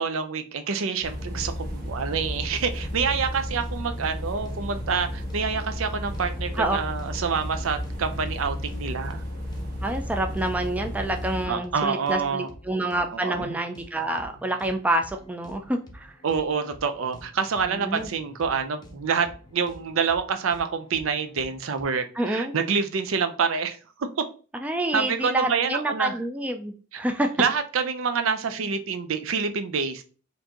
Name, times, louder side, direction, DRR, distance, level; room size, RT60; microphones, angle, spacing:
voice 1, 0.0-9.2 11.5-12.5 13.1-13.5 16.2-19.3 19.5-24.2 24.9-26.1 27.4-30.0, right 5 dB, 70° right, 8 dB, 0.5 m, -27 dB
sound 1, 1.0-11.5, equal, 45° right, 1.4 m, -33 dB
sound 2, 3.2-21.8, equal, 20° left, 0.7 m, -49 dB
voice 2, 9.8-16.1 17.7-18.1 22.2-22.5 24.6-27.3, right 1 dB, 5° right, 4 dB, 0.3 m, -27 dB
4.3 x 2.6 x 2.9 m, 0.38 s
head